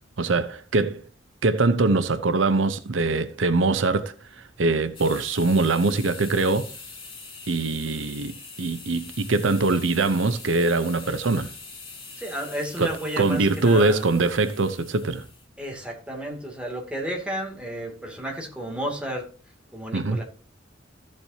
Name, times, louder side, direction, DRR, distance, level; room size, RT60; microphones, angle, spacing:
voice 1, 0.2-1.0 1.4-6.7 7.5-8.3 8.6-11.5 12.8-12.9 13.2-15.2 19.9-20.2, right 3 dB, 75° right, 0.8 m, -23 dB
sound 1, 4.9-15.4, left 4 dB, 30° left, 3.4 m, -43 dB
voice 2, 12.2-14.0 15.6-19.3 19.7-20.2, equal, 5° right, 2.6 m, -32 dB
15.0 x 7.5 x 2.8 m
head